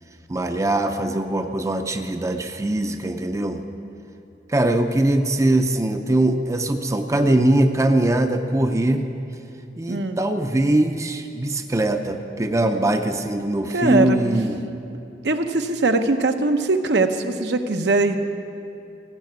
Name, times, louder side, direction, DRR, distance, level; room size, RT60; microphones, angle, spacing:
voice 1, 0.3-3.6 4.5-9.0 9.8-14.6, right 1 dB, 20° right, 6 dB, 0.5 m, -21 dB
voice 2, 9.9-10.2 13.7-14.4 15.2-18.2, right 2 dB, 75° right, 7 dB, 0.7 m, -21 dB
15.0 x 5.9 x 9.3 m, 2.8 s
head